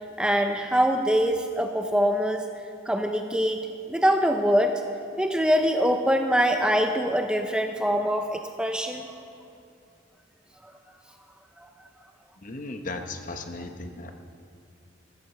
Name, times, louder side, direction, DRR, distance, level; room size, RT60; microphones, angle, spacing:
voice 1, 0.2-2.4 2.9-4.8 5.2-9.1 10.6-10.7 11.6-11.7, equal, 5° right, 5 dB, 0.5 m, -24 dB
voice 2, 12.4-14.1, left 2 dB, 40° left, 6 dB, 0.8 m, -36 dB
14.5 x 8.5 x 6.9 m, 2.5 s
head